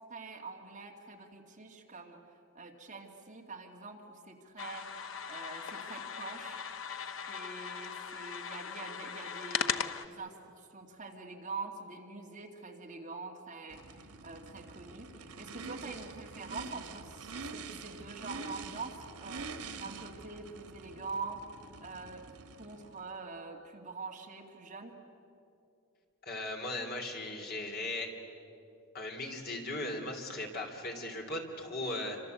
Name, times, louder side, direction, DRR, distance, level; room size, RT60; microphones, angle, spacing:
voice 1, 0.1-6.6 7.3-24.9, right 4 dB, 35° right, 1 dB, 2.4 m, -45 dB
sound 1, 4.6-10.1, left 7 dB, 60° left, 0.9 m, -38 dB
Race car auto racing / Idling / Accelerating revving vroom, 13.7-23.1, right 4 dB, 90° right, 1.6 m, -46 dB
voice 2, 26.2-28.1 28.9-32.2, left 2 dB, 45° left, 2 dB, 3.4 m, -38 dB
28.0 x 26.0 x 8.1 m, 2.7 s
head